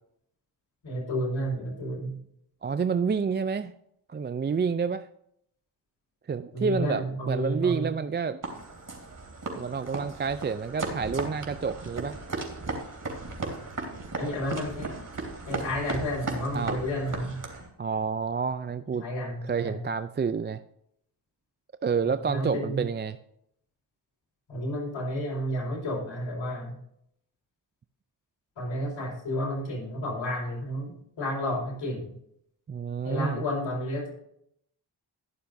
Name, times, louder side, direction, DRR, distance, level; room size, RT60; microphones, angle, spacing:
voice 1, 0.8-2.2 6.5-7.9 14.2-14.9 15.5-17.4 18.9-19.8 22.0-22.8 24.5-26.7 28.6-32.1 33.0-34.1, equal, 70° left, -3 dB, 4.9 m, -31 dB
voice 2, 2.6-3.7 4.1-5.1 6.3-8.4 9.5-12.2 16.5-16.8 17.8-19.0 19.4-20.6 21.8-23.2 32.7-33.4, right 5 dB, 25° right, 12 dB, 0.4 m, -29 dB
sound 1, 8.4-17.7, right 3 dB, 40° right, 3.0 m, -36 dB
20.5 x 6.9 x 2.7 m, 0.73 s
supercardioid pair, 50°, 46 cm